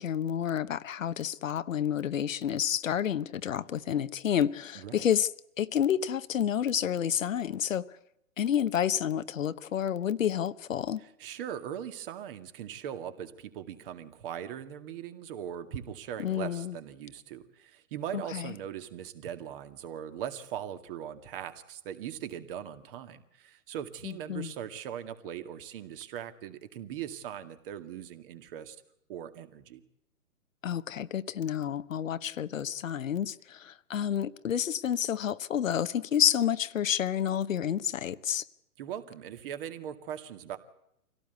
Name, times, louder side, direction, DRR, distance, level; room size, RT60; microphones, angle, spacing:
voice 1, 0.0-5.3 5.6-7.9 8.4-11.0 16.2-16.8 18.1-18.5 24.0-24.5 30.6-38.4, left 9 dB, 65° left, 1.1 m, -29 dB
voice 2, 4.8-5.1 11.2-28.8 29.1-29.8 38.8-40.6, right 9 dB, 40° right, 2.2 m, -40 dB
25.5 x 17.0 x 8.2 m
hypercardioid pair, 130°, 43 cm